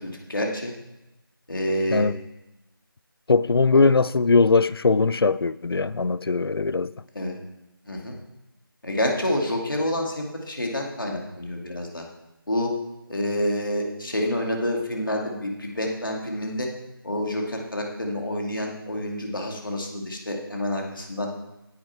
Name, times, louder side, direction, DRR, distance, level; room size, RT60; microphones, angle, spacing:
voice 1, 0.0-0.7 1.5-2.1 3.7-3.8 7.1-7.4 7.9-8.2 8.8-12.0 12.5-12.7 13.1-16.7 17.0-21.3, left 1 dB, ahead, 1.0 m, -28 dB
voice 2, 3.3-6.9, left 4 dB, 85° left, 0.4 m, -20 dB
9.5 x 9.4 x 4.5 m
figure-of-eight pair, 180°, 12 cm